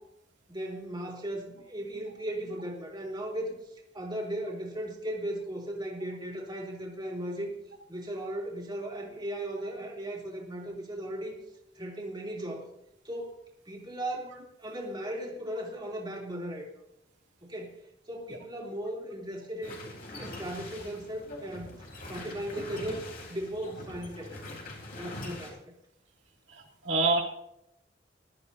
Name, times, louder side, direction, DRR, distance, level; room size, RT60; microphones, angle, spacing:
voice 1, 0.5-7.5 7.9-11.4 11.7-12.7 13.0-13.4 13.6-16.7 17.4-17.7 18.1-19.8 20.1-24.4 24.9-25.7, right 1 dB, 25° right, -2 dB, 3.0 m, -37 dB
sound 1, 19.6-25.5, left 2 dB, 55° left, 4.0 m, -43 dB
voice 2, 26.5-27.2, right 3 dB, 80° right, -2 dB, 2.8 m, -27 dB
21.0 x 13.0 x 2.7 m, 0.81 s
head